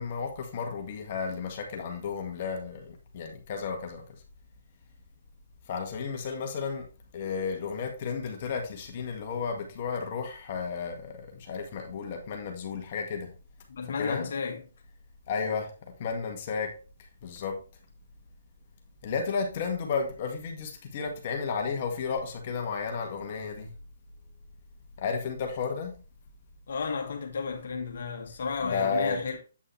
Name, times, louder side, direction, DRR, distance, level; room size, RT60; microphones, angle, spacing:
voice 1, 0.0-2.8 3.1-4.0 5.7-6.9 7.1-13.3 14.0-14.3 15.3-15.7 16.0-16.7 17.2-17.5 19.0-23.7 25.0-25.9 28.6-29.2, left 5 dB, 40° left, 1.8 m, -32 dB
voice 2, 13.7-14.6 26.7-29.4, left 5 dB, 60° left, 1.7 m, -33 dB
8.6 x 5.4 x 3.3 m
hypercardioid pair, 145°, 0 cm